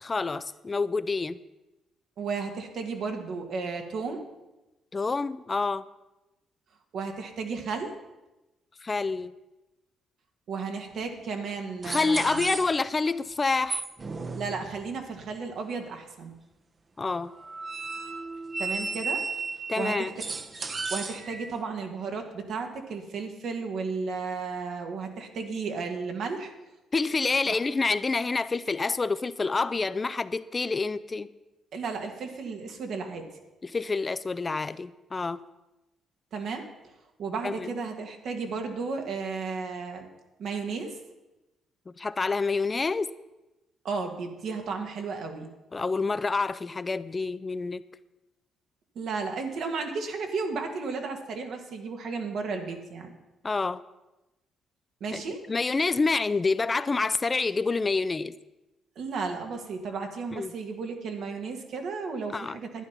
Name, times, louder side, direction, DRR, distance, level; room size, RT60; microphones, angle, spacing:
voice 1, 0.0-1.4 4.9-5.8 8.8-9.3 11.9-13.8 17.0-17.3 19.7-20.1 26.9-31.3 33.6-35.4 37.4-37.7 41.9-43.1 45.7-47.8 53.4-53.8 55.1-55.2 55.5-58.3 60.3-60.5 62.3-62.6, left 4 dB, 30° left, 0.4 m, -27 dB
voice 2, 2.2-4.2 6.9-7.9 10.5-12.6 14.3-16.3 18.6-19.2 19.8-20.1 20.9-26.5 27.5-27.6 31.7-33.3 36.3-36.7 37.2-40.1 40.4-41.0 43.8-45.5 49.0-53.2 55.0-55.4 59.0-62.8, right 4 dB, 70° right, 1.9 m, -34 dB
sound 1, 11.0-11.1 11.8-13.1 13.6-15.0 17.3-21.6, right 4 dB, 35° right, 0.9 m, -34 dB
11.5 x 9.5 x 5.9 m
cardioid pair, 90°, 0 cm